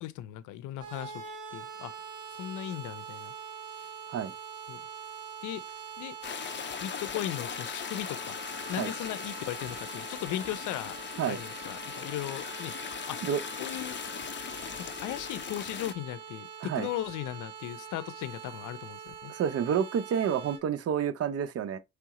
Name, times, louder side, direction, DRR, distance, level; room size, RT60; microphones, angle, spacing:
voice 1, 0.0-1.2 1.5-1.9 2.4-3.3 3.8-4.0 4.7-4.8 5.4-5.6 6.0-6.2 6.8-8.4 8.7-11.0 11.3-12.7 13.1-13.2 13.6-14.0 14.8-19.3, left 13 dB, 85° left, 0.5 m, -37 dB
sound 1, 0.8-20.6, right 7 dB, 80° right, 1.6 m, -44 dB
sound 2, 6.2-15.9, left 8 dB, 40° left, 0.5 m, -39 dB
voice 2, 19.3-21.8, right 8 dB, 50° right, 0.7 m, -29 dB
4.7 x 3.4 x 2.9 m
cardioid pair, 90°, 30 cm